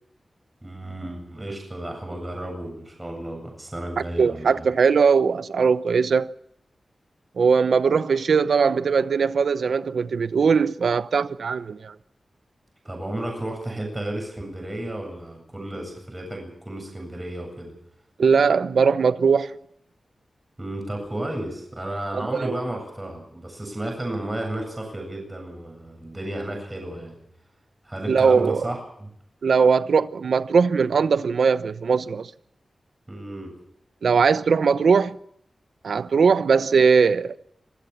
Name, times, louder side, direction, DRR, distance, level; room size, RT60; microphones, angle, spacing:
voice 1, 0.6-4.7 12.8-17.7 20.6-27.2 27.8-29.1 33.1-33.5, right 1 dB, 20° right, 7.9 m, -33 dB
voice 2, 4.2-6.3 7.4-11.9 18.2-19.6 22.1-22.5 28.1-28.7 29.4-32.3 34.0-35.2 35.8-37.4, right 5 dB, 90° right, 0.9 m, -20 dB
25.5 x 16.5 x 7.3 m
wide cardioid pair, 95°, 0 cm